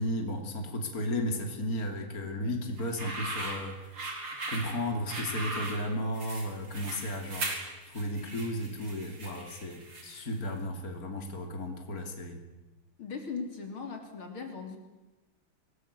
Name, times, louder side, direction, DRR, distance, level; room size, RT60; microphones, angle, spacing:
voice 1, 0.0-3.8 4.5-7.5 7.9-12.4, left 1 dB, 40° left, 3 dB, 3.5 m, -34 dB
sound 1, 2.8-10.3, right 2 dB, 60° right, 5.1 m, -39 dB
voice 2, 13.0-14.8, left 5 dB, 75° left, 4 dB, 4.1 m, -38 dB
27.0 x 19.0 x 8.3 m, 1.1 s
omnidirectional pair, 2.4 m